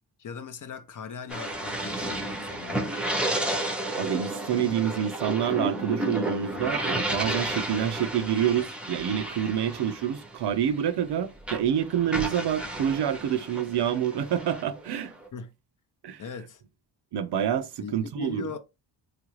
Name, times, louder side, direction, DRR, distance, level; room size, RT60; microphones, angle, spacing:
voice 1, 0.2-3.0 15.3-15.5 16.2-16.6 17.8-18.6, left 4 dB, 50° left, 0.6 m, -39 dB
sound 1, 1.3-11.1 11.4-15.3, right 1 dB, 5° right, 0.7 m, -32 dB
voice 2, 4.0-15.1 16.0-16.2 17.1-18.5, right 9 dB, 70° right, 0.5 m, -27 dB
3.3 x 2.4 x 3.0 m
cardioid pair, 80°, 42 cm